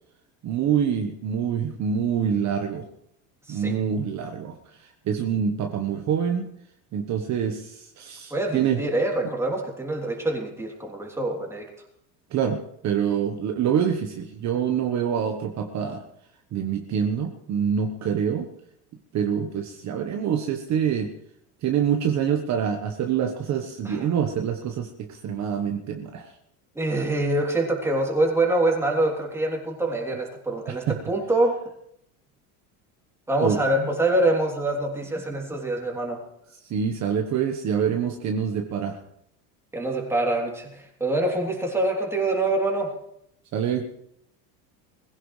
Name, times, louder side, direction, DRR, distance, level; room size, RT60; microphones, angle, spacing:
voice 1, 0.4-2.9 3.5-6.5 6.9-8.8 12.3-16.0 16.5-18.5 19.1-21.1 21.6-26.3 30.9-31.0 33.4-33.9 36.7-39.0 43.5-43.9, right 8 dB, 40° right, 4 dB, 1.3 m, -26 dB
voice 2, 8.3-11.7 23.8-24.1 26.7-31.6 33.3-36.2 39.7-42.9, right 2 dB, 5° right, 0 dB, 3.2 m, -25 dB
21.0 x 16.0 x 3.3 m, 0.74 s
supercardioid pair, 130°, 41 cm